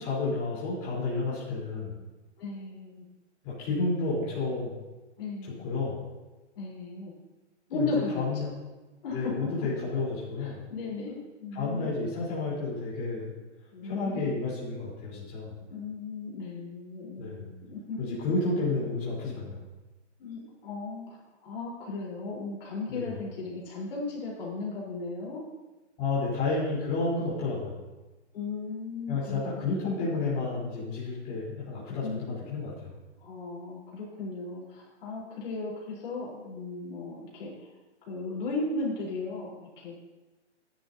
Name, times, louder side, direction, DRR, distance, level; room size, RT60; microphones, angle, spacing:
voice 1, 0.0-2.0 3.4-4.8 5.4-6.0 7.7-8.5 9.1-10.7 11.5-13.3 13.8-15.5 17.2-17.4 18.0-19.6 22.9-23.1 26.0-27.8 29.1-32.9, left 3 dB, 20° left, -8 dB, 3.9 m, -31 dB
voice 2, 2.4-3.0 5.2-5.7 6.5-7.1 7.7-8.5 9.0-9.3 10.4-12.0 13.7-14.3 15.7-18.2 20.2-21.2 21.4-25.4 28.3-29.7 31.2-31.4 32.0-32.2 33.2-37.7 38.1-39.9, left 3 dB, 50° left, -4 dB, 4.2 m, -36 dB
15.0 x 10.5 x 2.8 m, 1.1 s
hypercardioid pair, 155°, 36 cm